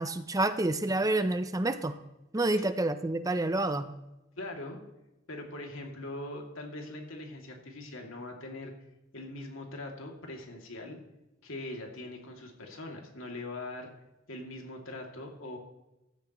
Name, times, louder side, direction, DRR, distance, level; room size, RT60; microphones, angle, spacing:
voice 1, 0.0-2.0 2.3-3.9, right 2 dB, 15° right, 10 dB, 0.5 m, -28 dB
voice 2, 4.4-4.8 5.3-8.7 9.1-11.0 11.4-13.9 14.3-15.6, left 2 dB, 80° left, 1 dB, 2.6 m, -41 dB
15.0 x 12.5 x 3.1 m, 0.96 s
head